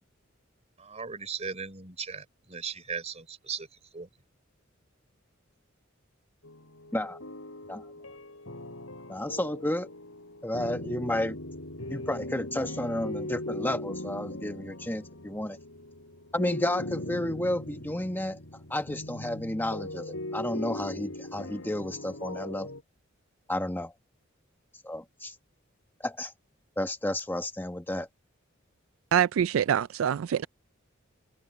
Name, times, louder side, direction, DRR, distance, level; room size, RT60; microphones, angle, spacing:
voice 1, 0.8-3.7 3.9-4.1, right 6 dB, 35° right, 3.7 m, -37 dB
sound 1, 6.4-22.8, left 1 dB, 80° left, 5.3 m, -39 dB
voice 2, 9.1-9.9 10.4-11.4 11.9-15.6 16.3-18.4 18.7-22.7 23.5-23.9 24.8-25.3 26.0-26.3 26.8-28.1, left 1 dB, 10° left, 1.3 m, -31 dB
voice 3, 29.1-30.5, right 9 dB, 80° right, 0.4 m, -25 dB
head